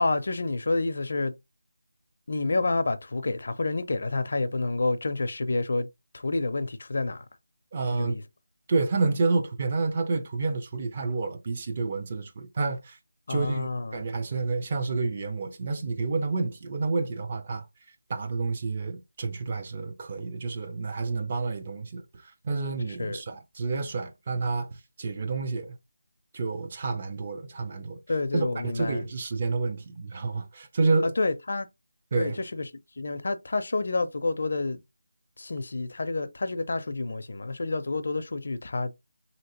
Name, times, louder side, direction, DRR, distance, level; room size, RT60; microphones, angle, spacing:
voice 1, 0.0-1.3 2.3-5.9 6.1-7.2 7.9-8.2 13.3-14.0 23.0-23.2 28.1-29.0 31.0-31.7 32.2-32.7 33.0-34.8 35.4-38.9, left 3 dB, 60° left, 0.5 m, -29 dB
voice 2, 7.7-8.2 8.7-13.0 13.3-17.7 18.1-25.8 26.3-28.0 28.3-31.1 32.1-32.4, right 3 dB, 30° right, 0.5 m, -29 dB
3.0 x 2.8 x 2.8 m
figure-of-eight pair, 170°, 0 cm